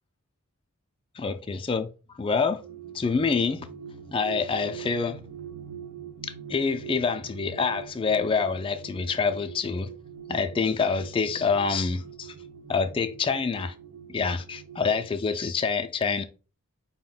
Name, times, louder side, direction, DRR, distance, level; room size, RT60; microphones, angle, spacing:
voice 1, 1.2-2.6 2.9-3.7 4.1-5.2 6.2-9.9 10.3-12.3 12.7-13.7 14.1-16.2, left 5 dB, 25° left, 0.3 m, -26 dB
sound 1, 2.4-15.1, right 8 dB, 60° right, 0.5 m, -43 dB
4.9 x 2.1 x 3.8 m
head